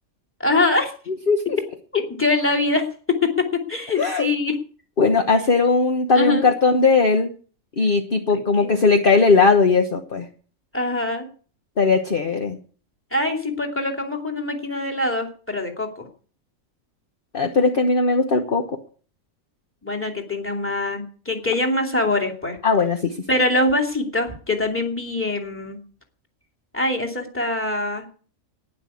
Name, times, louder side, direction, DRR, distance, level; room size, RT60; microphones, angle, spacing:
voice 1, 0.4-0.9 1.9-4.6 6.1-6.5 8.3-8.7 10.7-11.3 13.1-16.1 19.8-22.6 23.3-25.8 26.7-28.1, left 2 dB, 10° left, 4 dB, 2.6 m, -23 dB
voice 2, 1.3-1.6 4.0-4.3 5.0-7.3 7.8-10.3 11.8-12.6 17.3-18.8 22.6-23.2, left 4 dB, 40° left, 5 dB, 1.3 m, -18 dB
12.0 x 10.0 x 8.4 m, 0.43 s
omnidirectional pair, 1.4 m